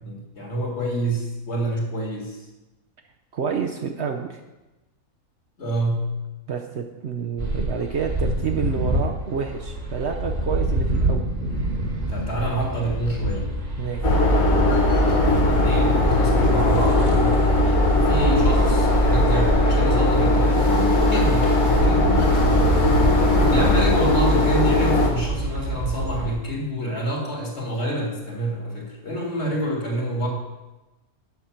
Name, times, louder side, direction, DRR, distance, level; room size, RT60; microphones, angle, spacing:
voice 1, 0.0-2.4 5.6-6.2 12.1-13.5 15.3-17.5 17.9-22.1 23.5-30.3, right 1 dB, 50° left, -1 dB, 2.2 m, -27 dB
voice 2, 3.3-4.4 6.5-11.3 13.8-14.1 22.4-22.9, right 6 dB, 60° right, 3 dB, 0.8 m, -29 dB
sound 1, 7.4-26.3, right 1 dB, 30° right, 1.4 m, -26 dB
sound 2, 14.0-25.1, left 1 dB, 70° left, 1.8 m, -19 dB
7.9 x 6.4 x 5.7 m, 1.0 s
omnidirectional pair, 1.5 m